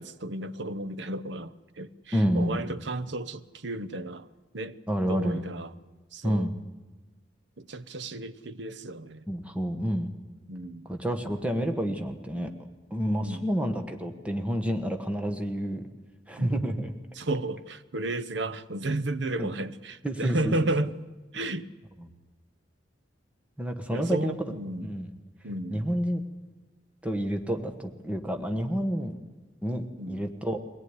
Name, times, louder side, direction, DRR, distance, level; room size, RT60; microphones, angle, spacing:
voice 1, 0.0-4.3 4.5-4.8 5.1-5.7 6.1-6.5 7.6-9.3 10.5-10.9 13.2-13.5 16.4-16.6 17.1-21.0 21.3-21.7 23.9-24.9 25.4-25.8 30.0-30.2, right 2 dB, 65° right, 0.9 m, -33 dB
voice 2, 2.1-2.6 4.9-5.4 6.2-6.5 9.3-10.1 10.9-12.5 12.9-15.8 16.3-16.9 19.4-19.5 20.0-20.5 23.6-24.5 24.8-25.1 25.7-26.2 27.0-29.2 29.6-30.6, equal, 5° right, 1.3 m, -29 dB
22.5 x 17.5 x 9.8 m
head